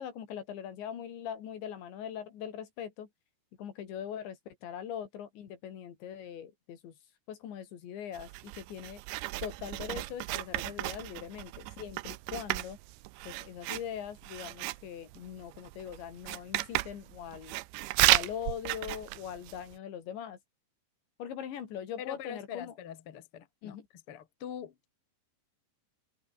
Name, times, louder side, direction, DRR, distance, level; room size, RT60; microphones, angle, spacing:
voice 1, 0.0-3.1 3.6-6.9 7.3-9.0 9.4-12.8 13.3-17.6 18.0-20.4 21.2-22.7 23.6-23.9, left 9 dB, 75° left, 5.2 m, -41 dB
Writing, 8.1-19.8, right 19 dB, 85° right, 3.0 m, -34 dB
voice 2, 22.0-23.8 24.1-24.9, left 9 dB, 45° left, 2.0 m, -43 dB
omnidirectional pair, 5.2 m